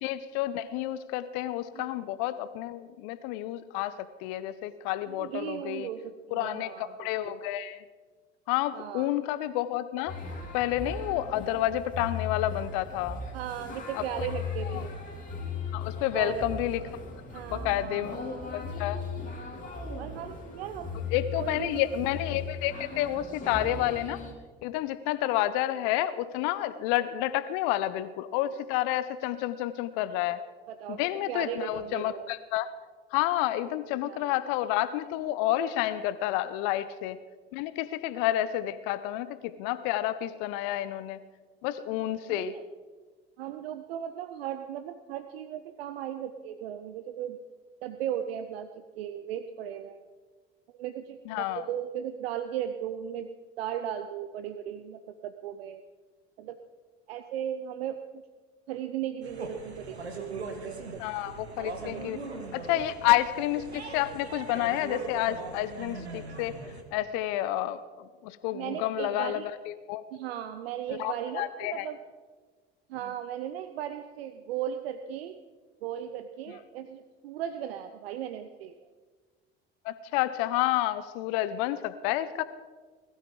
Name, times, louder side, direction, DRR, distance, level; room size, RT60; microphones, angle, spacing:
voice 1, 0.0-5.9 6.3-7.8 8.5-10.2 10.5-13.2 13.9-14.0 14.7-14.8 15.7-16.8 17.5-18.2 18.5-19.0 21.1-24.2 24.6-30.5 30.9-32.7 33.1-37.2 37.5-41.2 41.6-42.5 51.3-51.7 61.0-62.2 62.5-66.6 66.9-70.0 70.9-71.9 79.8-82.4, left 14 dB, 60° left, 14 dB, 0.8 m, -30 dB
voice 2, 5.1-7.4 8.7-9.1 13.3-14.9 16.1-16.5 17.3-18.5 20.0-21.0 21.4-21.9 30.7-31.0 31.3-32.3 34.0-34.3 36.6-36.7 42.3-42.6 43.4-47.4 47.8-50.0 50.7-53.3 53.6-55.8 56.4-56.6 57.1-58.0 58.7-62.1 62.7-63.2 68.5-69.5 70.1-72.0 72.9-75.4 75.8-78.7, right 10 dB, 70° right, 10 dB, 0.8 m, -37 dB
sound 1, 10.1-24.3, left 4 dB, 25° left, 3.6 m, -37 dB
sound 2, 59.2-66.8, right 3 dB, 90° right, 1.4 m, -40 dB
20.0 x 13.0 x 3.8 m, 1.4 s
figure-of-eight pair, 65°, 32 cm